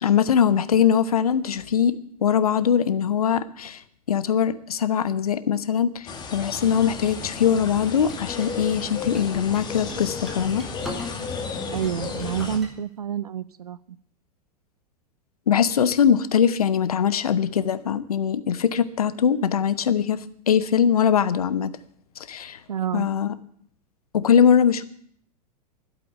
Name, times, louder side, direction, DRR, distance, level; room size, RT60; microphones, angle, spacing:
voice 1, 0.0-3.8 4.1-10.7 15.5-21.8 22.3-22.6 22.9-23.3 24.1-24.8, left 8 dB, 65° left, 15 dB, 0.9 m, -21 dB
sound 1, 6.1-12.6, left 5 dB, 20° left, 1.9 m, -33 dB
sound 2, 8.1-11.4 11.7-12.7, equal, ahead, 3.5 m, -41 dB
voice 2, 11.7-14.0 22.7-23.1, right 8 dB, 70° right, 19 dB, 0.5 m, -28 dB
12.0 x 8.2 x 9.8 m, 0.63 s
figure-of-eight pair, 95°, 20 cm